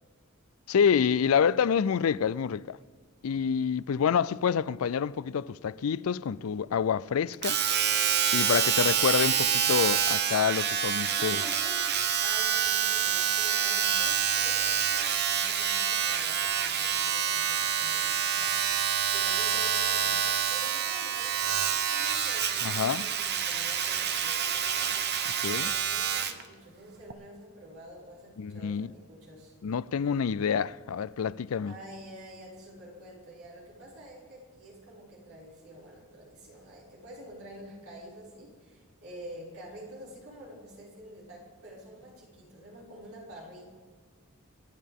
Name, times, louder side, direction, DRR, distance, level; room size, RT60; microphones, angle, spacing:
voice 1, 0.7-2.8 3.2-7.6 8.3-11.4 22.6-23.1 25.4-25.7 28.4-28.9 29.6-31.7, left 7 dB, 70° left, 0.4 m, -27 dB
Domestic sounds home sounds, 7.4-26.4 27.1-27.2, right 8 dB, 50° right, 0.9 m, -27 dB
voice 2, 11.1-25.2 25.5-29.5 31.6-43.6, right 1 dB, 70° right, 6.1 m, -48 dB
27.5 x 12.0 x 3.6 m
head